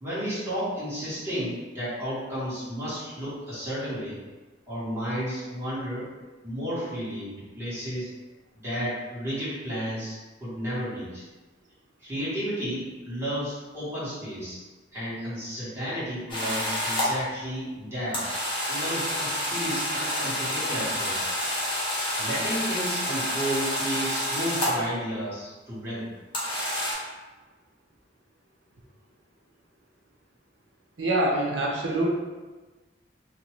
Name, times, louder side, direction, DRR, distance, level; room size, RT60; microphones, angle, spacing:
voice 1, 0.0-4.2 4.7-6.1 6.4-8.1 8.5-11.2 12.0-14.6 14.9-18.2 18.7-21.2 22.2-26.0, equal, 15° right, -12 dB, 1.4 m, -32 dB
sound 1, 16.3-17.1 18.1-24.9 26.3-26.9, left 1 dB, 30° left, 0.7 m, -28 dB
voice 2, 31.0-32.1, right 1 dB, 85° right, -2 dB, 0.7 m, -25 dB
2.7 x 2.3 x 3.0 m, 1.2 s
head